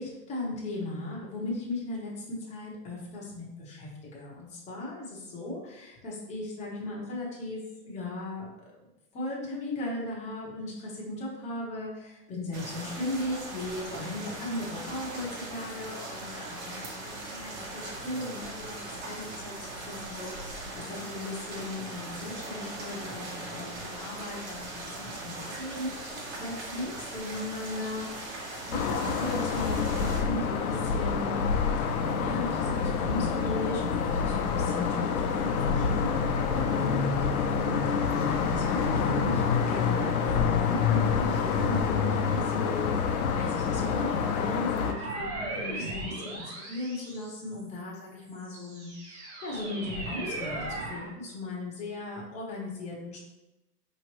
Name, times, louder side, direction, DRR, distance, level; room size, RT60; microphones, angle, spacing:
voice 1, 0.0-8.5 9.1-31.5 31.8-53.2, left 2 dB, 15° left, -4 dB, 0.9 m, -37 dB
sound 1, 12.5-30.2, right 2 dB, 45° right, 1.3 m, -40 dB
sound 2, 28.7-44.9, left 6 dB, 60° left, 0.8 m, -27 dB
sound 3, 44.8-47.7 48.3-51.1, right 2 dB, 20° right, 0.7 m, -37 dB
4.9 x 3.1 x 3.1 m, 0.96 s
hypercardioid pair, 150°, 49 cm